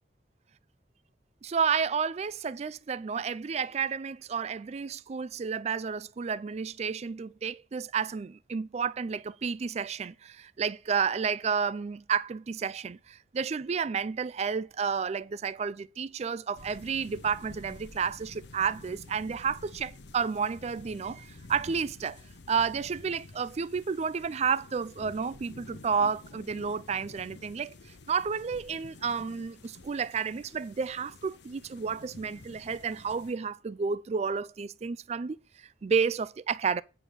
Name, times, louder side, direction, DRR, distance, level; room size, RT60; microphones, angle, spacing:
voice 1, 1.4-22.2 22.5-36.8, right 6 dB, 35° right, 0.4 m, -31 dB
sound 1, 16.6-33.3, left 2 dB, 75° left, 0.8 m, -50 dB
8.9 x 4.5 x 6.7 m
head